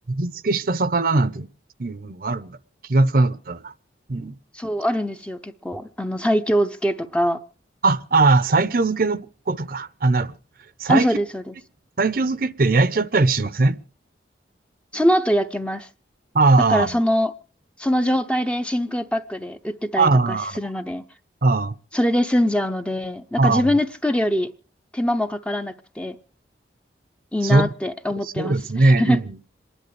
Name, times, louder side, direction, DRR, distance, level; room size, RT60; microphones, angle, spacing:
voice 1, 0.1-1.5 1.8-2.6 2.9-3.7 4.1-4.4 7.8-10.3 10.8-11.1 12.0-13.8 16.3-17.0 20.0-20.6 21.4-21.7 23.4-23.7 27.4-27.7 28.4-29.2, right 3 dB, 50° right, 0.7 m, -20 dB
voice 2, 4.5-7.4 10.9-11.5 14.9-15.9 16.7-17.3 17.8-21.0 21.9-24.5 24.9-26.2 27.3-29.2, equal, 5° left, 0.6 m, -23 dB
27.0 x 11.0 x 3.2 m
head